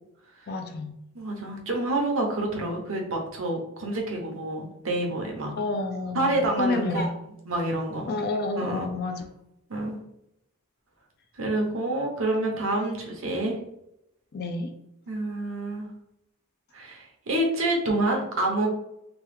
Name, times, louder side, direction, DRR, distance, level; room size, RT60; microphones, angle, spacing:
voice 1, 0.5-0.9 5.6-7.1 8.0-9.2 14.3-14.7, left 2 dB, 45° left, 6 dB, 0.4 m, -29 dB
voice 2, 1.1-5.6 6.1-7.1 7.5-8.1 8.6-8.9 9.7-10.0 11.4-13.6 15.1-15.9 16.7-18.7, right 1 dB, 60° right, 1 dB, 0.7 m, -28 dB
2.9 x 2.3 x 3.2 m, 0.81 s
head